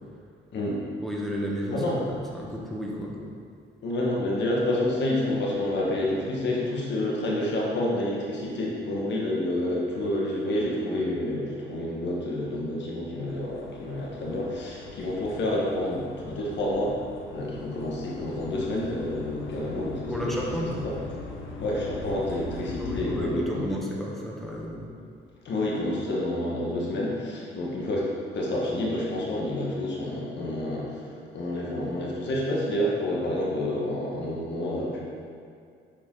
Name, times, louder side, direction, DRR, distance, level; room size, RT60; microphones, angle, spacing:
voice 1, 1.0-2.0 2.3-3.1 19.8-20.7 22.8-24.9, equal, ahead, -3 dB, 1.5 m, -32 dB
voice 2, 3.8-17.0 17.3-20.9 21.6-23.6 25.4-28.0 28.3-35.0, left 1 dB, 65° left, -4 dB, 1.6 m, -29 dB
sound 1, 13.3-23.3, left 3 dB, 80° left, 0.9 m, -41 dB
9.1 x 5.1 x 3.8 m, 2.3 s
cardioid pair, 90°, 20 cm